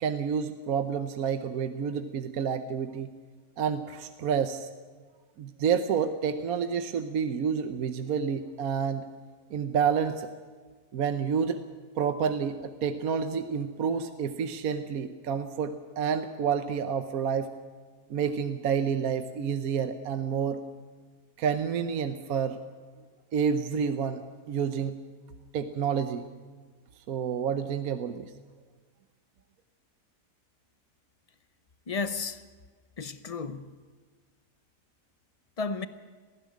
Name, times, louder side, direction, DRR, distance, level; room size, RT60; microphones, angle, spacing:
voice 1, 0.0-3.1 3.6-4.7 5.4-9.1 9.5-10.3 10.9-11.6 12.0-17.5 18.1-20.6 21.4-22.6 23.3-24.2 24.5-25.0 25.5-26.3 27.1-28.3, right 7 dB, 60° right, 1.2 m, -29 dB
voice 2, 31.9-32.4 33.0-33.7 35.6-35.9, left 4 dB, 65° left, 0.3 m, -32 dB
19.0 x 15.5 x 9.4 m
omnidirectional pair, 1.8 m